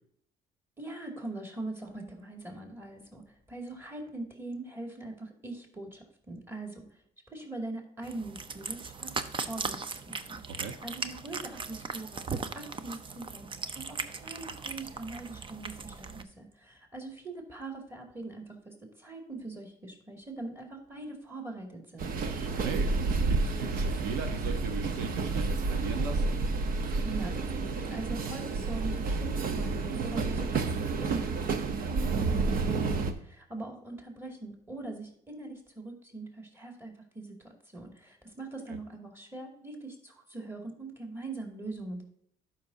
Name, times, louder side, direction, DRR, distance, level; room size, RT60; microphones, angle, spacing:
voice 1, 0.8-6.9 7.3-9.8 10.1-12.2 12.5-22.1 27.0-37.4 37.7-42.0, right 2 dB, 15° right, 1 dB, 2.3 m, -42 dB
Cat, 8.0-16.2, right 4 dB, 30° right, 0.6 m, -38 dB
sound 1, 22.0-33.1, right 3 dB, 60° right, 1.0 m, -30 dB
voice 2, 22.6-26.4 38.7-38.8, right 5 dB, 90° right, 7 dB, 1.0 m, -38 dB
12.0 x 5.7 x 2.7 m, 0.66 s
cardioid pair, 110°, 17 cm